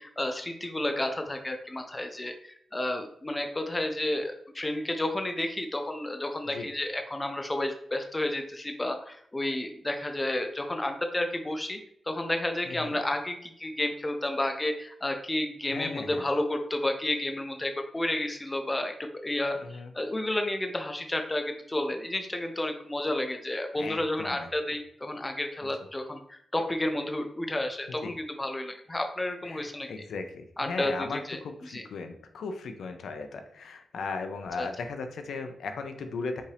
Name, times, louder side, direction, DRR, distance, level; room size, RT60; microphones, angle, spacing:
voice 1, 0.0-11.8 12.1-29.9 30.6-31.8 34.6-34.7, left 1 dB, 15° left, 5 dB, 0.4 m, -31 dB
voice 2, 12.7-13.0 15.7-16.2 19.6-19.9 23.7-24.5 28.0-28.1 29.4-36.4, left 4 dB, 85° left, 6 dB, 0.5 m, -37 dB
5.3 x 2.5 x 3.3 m, 0.67 s
wide cardioid pair, 165°, 0 cm